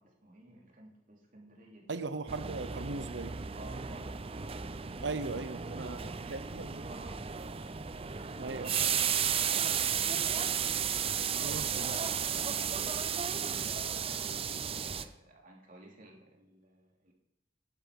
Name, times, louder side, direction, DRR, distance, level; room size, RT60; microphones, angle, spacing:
voice 1, 0.0-2.0 3.5-4.2 5.1-5.5 5.7-7.3 11.3-17.1, right 2 dB, 45° right, -1 dB, 3.1 m, -55 dB
voice 2, 1.9-3.4 5.0-6.9 8.4-9.3 11.3-12.1, right 3 dB, 70° right, 12 dB, 0.8 m, -39 dB
sound 1, 2.3-15.0, right 7 dB, 30° right, 0.6 m, -34 dB
11.0 x 10.5 x 5.3 m, 0.83 s
head